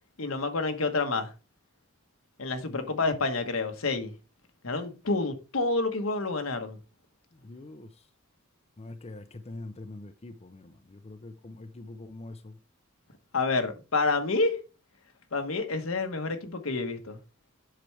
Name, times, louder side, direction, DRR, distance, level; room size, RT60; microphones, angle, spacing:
voice 1, 0.2-1.3 2.4-4.1 4.6-6.8 13.3-14.6 15.3-17.2, left 3 dB, 80° left, 1.2 m, -28 dB
voice 2, 2.7-3.1 7.3-8.1 8.8-12.6, left 2 dB, 30° left, 0.6 m, -44 dB
7.8 x 6.0 x 3.3 m
head